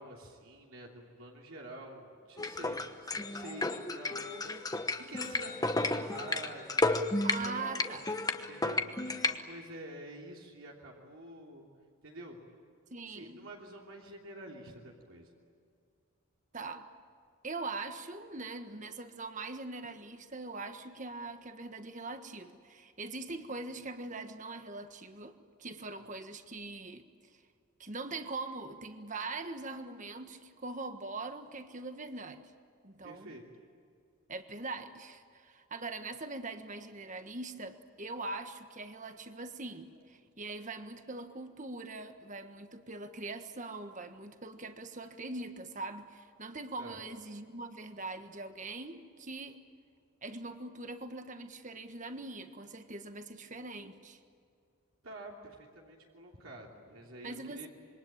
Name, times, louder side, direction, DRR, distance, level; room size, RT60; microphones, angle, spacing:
voice 1, 0.0-4.4 4.7-7.6 8.5-11.7 12.0-12.4 13.1-15.3 25.9-26.0 33.0-33.4 46.8-47.0 55.0-57.7, right 1 dB, 70° right, -1 dB, 3.2 m, -48 dB
sound 1, 2.4-9.4, left 2 dB, 15° left, 1.1 m, -33 dB
voice 2, 7.2-8.1 12.9-13.5 16.5-16.8 17.4-27.0 27.8-32.4 32.8-33.3 34.3-49.6 50.2-54.2 57.2-57.7, right 3 dB, 35° right, 8 dB, 1.5 m, -42 dB
26.5 x 23.5 x 8.9 m, 2.3 s
head